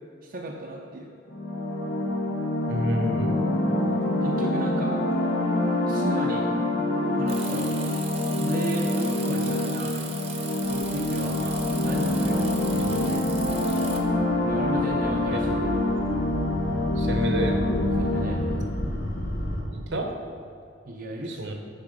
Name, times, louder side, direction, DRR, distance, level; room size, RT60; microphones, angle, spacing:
voice 1, 0.2-1.1 3.8-3.9 4.2-4.9 5.9-6.5 7.1-7.7 8.3-9.9 10.3-13.3 14.4-15.7 18.0-18.6 20.9-21.6, right 2 dB, 55° right, -2 dB, 0.6 m, -35 dB
sound 1, 1.3-18.6, left 1 dB, 70° left, 1.4 m, -26 dB
voice 2, 2.7-3.4 15.3-15.4 17.0-17.6 19.7-20.1 21.3-21.5, equal, 70° right, 3 dB, 0.9 m, -28 dB
Bicycle, 7.3-14.0, right 5 dB, 35° right, 0.9 m, -39 dB
sound 2, 10.6-19.6, left 1 dB, 55° left, 1.0 m, -33 dB
9.4 x 4.1 x 5.1 m, 2.5 s
head